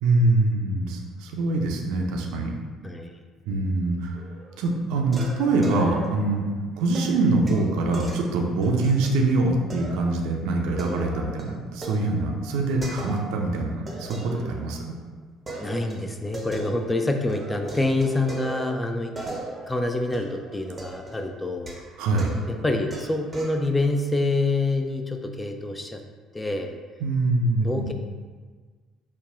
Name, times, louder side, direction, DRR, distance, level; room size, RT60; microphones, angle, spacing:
voice 1, 0.0-2.5 3.5-4.2 4.6-6.5 6.7-15.0 22.0-22.3 27.0-27.9, right 2 dB, 65° right, 1 dB, 0.5 m, -24 dB
sound 1, 4.1-4.6 5.1-6.3 6.9-9.2 9.7-10.2 10.5-13.5 13.9-15.0 15.5-17.0 17.3-23.6, right 2 dB, 25° right, 0.7 m, -38 dB
voice 2, 15.6-19.2 19.7-21.8 22.5-26.0 26.3-26.8 27.6-27.9, left 2 dB, 15° left, 5 dB, 0.3 m, -26 dB
5.3 x 2.2 x 2.5 m, 1.5 s
figure-of-eight pair, 55°, 0 cm